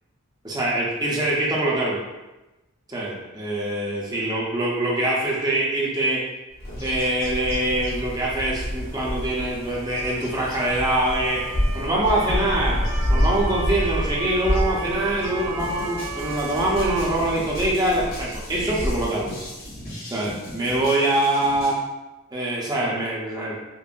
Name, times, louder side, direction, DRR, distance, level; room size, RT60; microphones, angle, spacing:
voice 1, 0.4-2.0 2.9-6.2 6.8-11.4 11.7-12.8 13.1-19.4 20.0-21.8 22.3-23.6, right 1 dB, 20° right, -4 dB, 0.6 m, -24 dB
Bird vocalization bird call bird song, 6.6-19.9, equal, 80° left, 1.3 m, -28 dB
Motor vehicle (road) / Siren, 9.6-17.0, right 3 dB, 70° right, 1.3 m, -35 dB
sound 1, 15.6-21.8, left 1 dB, 45° left, 1.0 m, -39 dB
5.3 x 2.0 x 2.5 m, 1.0 s
head